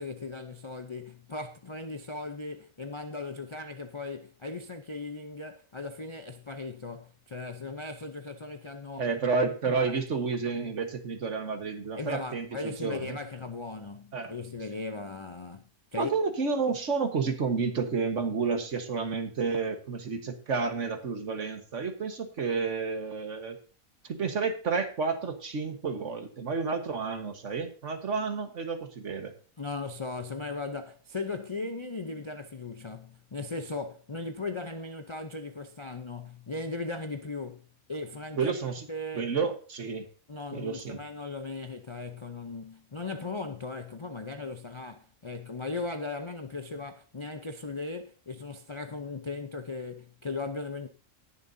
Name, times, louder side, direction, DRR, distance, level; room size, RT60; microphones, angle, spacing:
voice 1, 0.0-9.1 9.7-10.0 12.0-15.6 15.9-16.1 29.6-38.6 38.9-39.4 40.3-50.9, left 3 dB, 35° left, 0.4 m, -38 dB
voice 2, 9.0-13.2 14.1-14.3 16.0-23.6 24.1-29.3 38.4-38.9 39.1-40.1 40.5-41.0, right 5 dB, 60° right, 1.7 m, -30 dB
19.5 x 7.1 x 2.7 m
omnidirectional pair, 1.5 m